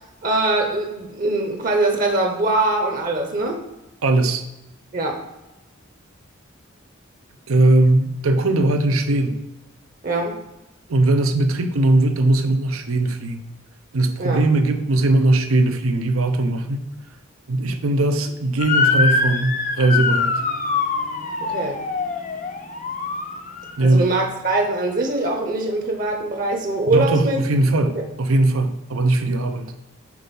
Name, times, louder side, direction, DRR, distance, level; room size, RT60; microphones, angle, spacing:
voice 1, 0.2-3.6 4.9-5.2 10.0-10.4 14.2-14.4 21.4-21.8 23.8-27.4 27.9-28.0, right 2 dB, 40° right, 3 dB, 0.8 m, -22 dB
voice 2, 4.0-4.4 7.5-9.4 10.9-13.5 13.9-16.9 17.5-20.4 23.8-24.1 26.9-29.7, right 2 dB, 90° right, 7 dB, 0.7 m, -19 dB
Motor vehicle (road) / Siren, 18.6-23.8, left 4 dB, 40° left, 0.6 m, -23 dB
6.2 x 4.0 x 5.3 m, 0.99 s
head